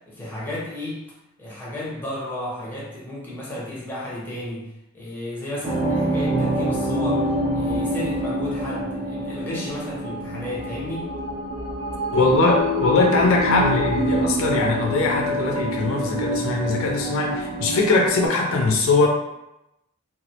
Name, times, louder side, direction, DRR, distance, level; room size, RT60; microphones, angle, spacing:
voice 1, 0.1-1.0 1.4-11.1, left 1 dB, 10° left, -6 dB, 0.5 m, -33 dB
sound 1, 5.6-18.3, equal, 45° right, 0.4 m, -26 dB
voice 2, 12.1-19.1, left 3 dB, 65° left, 0 dB, 0.4 m, -21 dB
2.2 x 2.0 x 2.7 m, 0.89 s
head